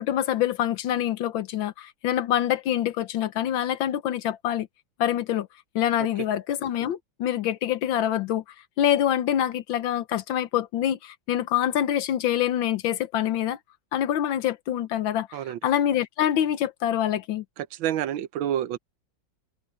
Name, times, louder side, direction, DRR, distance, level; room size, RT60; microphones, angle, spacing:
voice 1, 0.0-4.7 5.0-5.5 5.7-8.4 8.8-13.6 13.9-17.4, left 11 dB, 75° left, 1.6 m, -25 dB
voice 2, 17.8-18.8, right 11 dB, 80° right, 1.5 m, -28 dB
omnidirectional pair, 2.2 m